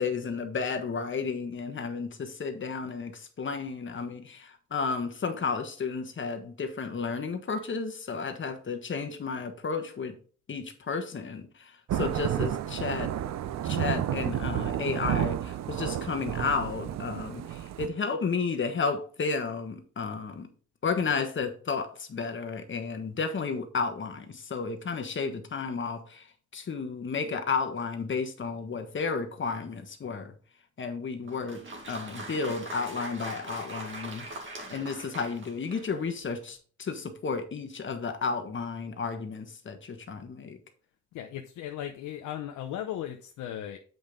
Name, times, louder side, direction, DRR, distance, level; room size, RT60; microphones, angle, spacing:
voice 1, 0.0-10.1 10.5-13.1 13.6-20.5 20.8-26.2 26.5-30.3 30.8-31.6 31.9-34.3 34.7-40.6, left 5 dB, 40° left, 1.4 m, -32 dB
Thunder / Rain, 11.9-17.9, right 11 dB, 65° right, 0.6 m, -31 dB
Applause, 31.2-36.1, right 2 dB, 40° right, 2.0 m, -41 dB
voice 2, 41.1-43.8, left 11 dB, 85° left, 0.8 m, -37 dB
7.8 x 5.2 x 3.7 m
cardioid pair, 90°, 30 cm